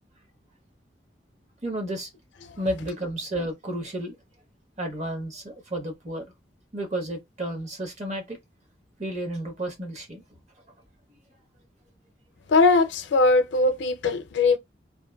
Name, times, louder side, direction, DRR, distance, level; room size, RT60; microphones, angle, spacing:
voice 1, 1.6-2.1 2.6-4.2 4.8-6.3 6.7-8.4 9.0-10.2, right 1 dB, 40° right, 0.9 m, -32 dB
voice 2, 12.5-14.6, left 3 dB, 85° left, 0.5 m, -20 dB
2.8 x 2.2 x 2.2 m
head